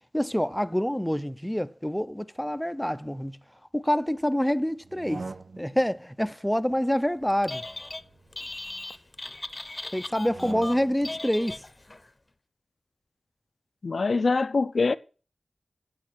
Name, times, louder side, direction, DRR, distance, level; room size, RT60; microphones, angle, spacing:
voice 1, 0.1-3.4 3.7-5.2 5.6-7.6 9.9-11.6, equal, 5° left, 0.5 m, -27 dB
sound 1, 4.8-5.9 7.2-8.8 10.2-11.2, right 3 dB, 85° right, 0.9 m, -43 dB
Telephone, 7.3-8.0 8.3-12.0, left 2 dB, 30° left, 0.8 m, -38 dB
voice 2, 13.8-15.0, left 3 dB, 65° left, 0.6 m, -24 dB
9.6 x 8.3 x 6.3 m
wide cardioid pair, 95°, 0 cm